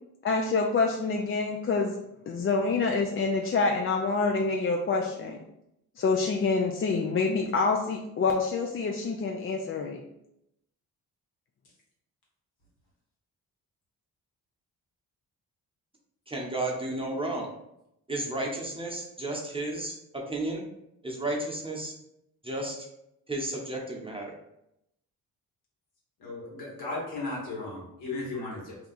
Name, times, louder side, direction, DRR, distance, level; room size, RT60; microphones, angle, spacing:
voice 1, 0.2-2.0 2.3-5.4 6.0-10.0, left 4 dB, 35° left, 2 dB, 0.4 m, -27 dB
voice 2, 16.3-17.5 18.1-19.9 20.3-20.6 21.0-21.9 22.4-22.8 23.3-24.2, right 2 dB, 15° right, -1 dB, 0.9 m, -32 dB
voice 3, 26.2-28.8, left 2 dB, 80° left, -4 dB, 1.4 m, -35 dB
2.8 x 2.2 x 4.0 m, 0.82 s
supercardioid pair, 55°, 38 cm